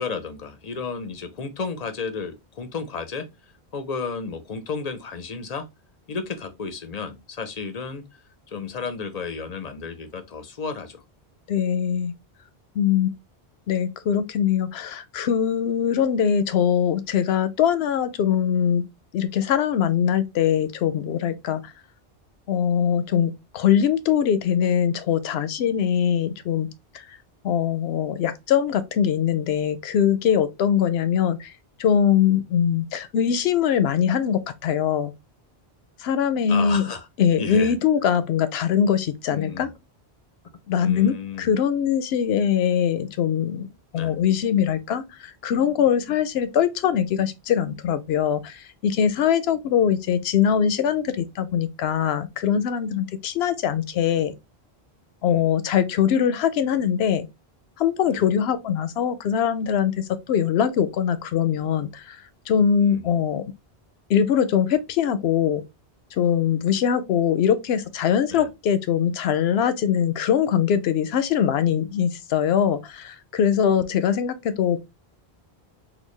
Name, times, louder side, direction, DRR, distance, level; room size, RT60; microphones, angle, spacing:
voice 1, 0.0-3.3 3.7-5.7 6.1-8.0 8.5-11.0 36.5-37.1 37.4-37.8 39.3-39.7 40.8-41.5 43.9-44.1 55.3-55.5 58.1-58.3 62.9-63.2 68.3-68.5, left 5 dB, 45° left, 0.6 m, -33 dB
voice 2, 11.5-12.1 12.8-13.1 13.7-18.9 19.1-21.7 22.5-26.7 26.9-27.2 27.4-31.5 31.8-35.1 36.0-36.9 37.2-39.7 40.7-43.7 43.9-54.3 55.2-57.3 57.8-63.4 64.1-65.6 66.1-74.8, left 8 dB, 80° left, 0.8 m, -22 dB
3.9 x 2.2 x 3.1 m
omnidirectional pair, 1.0 m